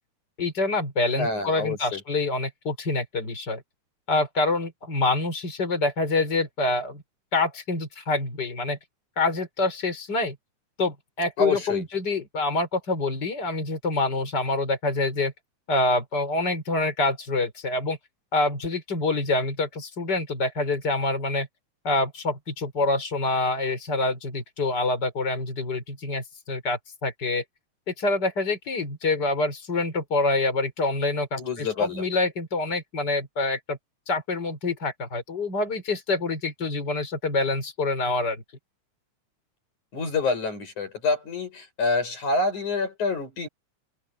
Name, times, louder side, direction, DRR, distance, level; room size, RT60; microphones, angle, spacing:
voice 1, 0.4-3.6 4.1-7.0 7.3-8.8 9.2-10.4 10.8-15.3 15.7-18.0 18.3-21.5 21.8-27.4 27.9-33.8 34.1-38.4, left 2 dB, 35° left, 5.9 m, -26 dB
voice 2, 1.1-2.0 11.4-11.8 31.4-32.1 39.9-43.5, left 3 dB, 90° left, 9.3 m, -27 dB
open air
omnidirectional pair, 3.3 m